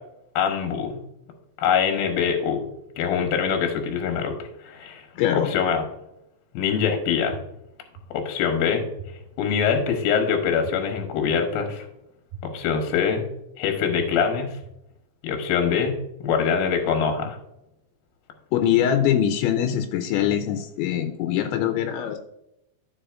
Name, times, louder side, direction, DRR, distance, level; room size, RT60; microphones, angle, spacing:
voice 1, 0.4-1.0 1.6-2.7 3.0-5.1 5.5-5.8 6.5-7.4 8.1-8.8 9.4-11.9 12.4-13.3 13.6-14.6 15.2-17.4, left 7 dB, 70° left, 4 dB, 2.4 m, -24 dB
voice 2, 5.2-5.5 18.5-22.2, left 10 dB, 85° left, 5 dB, 2.9 m, -23 dB
sound 1, 7.3-7.4 7.9-8.0 9.0-9.1 9.6-9.7 10.6-10.7 11.3-11.4 12.3-12.4 12.9-13.0 14.0-14.1 14.6-14.7, right 13 dB, 70° right, 2.6 m, -38 dB
13.5 x 4.8 x 2.5 m, 0.81 s
omnidirectional pair, 5.2 m